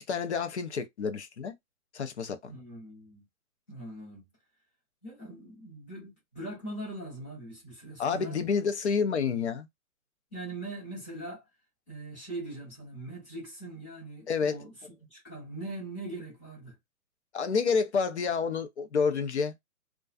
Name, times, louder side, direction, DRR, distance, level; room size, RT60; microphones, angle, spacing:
voice 1, 0.1-1.5 1.9-2.5 8.0-9.7 14.3-14.6 17.3-19.6, left 5 dB, 50° left, 0.6 m, -29 dB
voice 2, 2.5-3.2 3.7-4.2 5.0-8.4 10.3-11.4 11.9-14.7 15.1-16.8, right 2 dB, 10° left, 0.7 m, -41 dB
2.3 x 2.3 x 2.3 m
hypercardioid pair, 160°, 44 cm